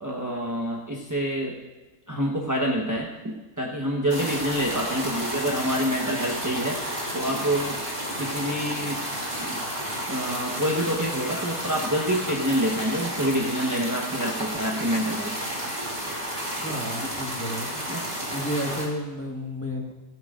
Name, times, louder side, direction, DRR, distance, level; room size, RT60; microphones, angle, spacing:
voice 1, 0.0-1.6 2.1-6.8 7.1-7.8 8.2-9.0 9.4-9.6 10.1-15.3 17.9-18.1, equal, 15° right, -2 dB, 1.0 m, -27 dB
sound 1, 4.1-18.9, equal, 35° right, 2.8 m, -32 dB
voice 2, 16.6-17.8 18.3-19.9, equal, 10° left, -1 dB, 1.5 m, -32 dB
14.0 x 14.0 x 2.5 m, 1.2 s
omnidirectional pair, 1.4 m